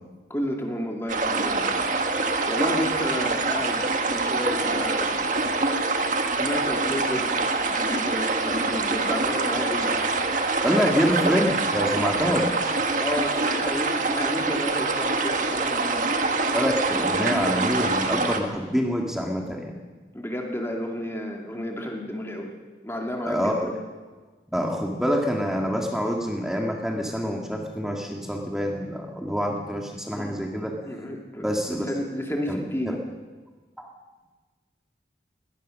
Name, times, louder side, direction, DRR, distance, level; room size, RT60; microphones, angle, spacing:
voice 1, 0.3-1.8 2.5-5.3 6.3-7.3 7.7-9.9 11.1-11.4 13.0-16.1 20.1-22.5 22.8-23.8 30.1-30.4 30.9-31.5 31.9-33.0, equal, 15° left, 1 dB, 2.4 m, -31 dB
sound 1, 1.1-18.4, right 3 dB, 45° right, 1.7 m, -25 dB
voice 2, 10.6-12.6 16.5-19.7 23.2-23.7 24.5-30.8 31.4-31.9 32.5-32.6 32.9-33.0 33.8-33.9, equal, 5° right, 0 dB, 1.9 m, -26 dB
22.0 x 19.0 x 6.5 m, 1.3 s
head